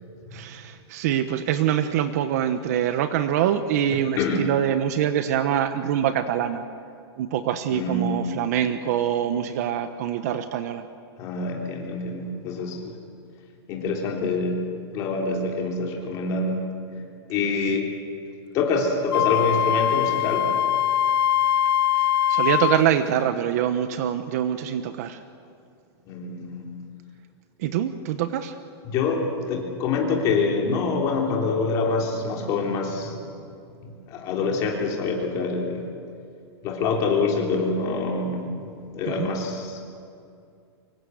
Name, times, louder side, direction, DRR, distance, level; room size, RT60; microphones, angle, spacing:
voice 1, 0.3-6.6 7.2-10.9 21.9-25.2 27.6-28.5 39.1-39.3, right 10 dB, 35° right, 10 dB, 1.0 m, -24 dB
voice 2, 4.2-4.5 7.7-8.4 11.2-12.9 13.7-14.6 14.9-16.6 17.3-17.9 18.5-20.5 26.1-26.7 28.9-33.3 33.8-35.9 36.6-39.8, left 4 dB, 25° left, 0 dB, 3.4 m, -26 dB
Wind instrument woodwind instrument, 19.1-22.8, left 11 dB, 55° left, 0.6 m, -22 dB
25.0 x 24.0 x 7.9 m, 2.4 s
supercardioid pair, 180°, 14 cm